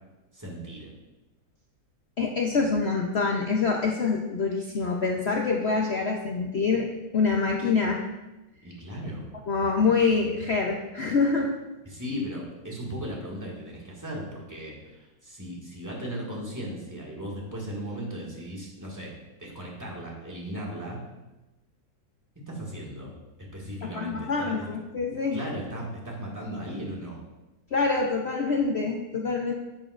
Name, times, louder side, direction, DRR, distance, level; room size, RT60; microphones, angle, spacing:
voice 1, 0.3-0.9 8.6-9.2 11.8-19.1 19.4-21.0 22.5-23.1 23.4-24.6 25.3-27.2, equal, 10° right, -4 dB, 1.7 m, -37 dB
voice 2, 2.2-6.9 7.1-8.0 9.5-11.5 23.8-25.4 27.7-29.5, left 4 dB, 70° left, 0 dB, 0.6 m, -25 dB
10.5 x 7.0 x 2.5 m, 1.1 s
omnidirectional pair, 1.9 m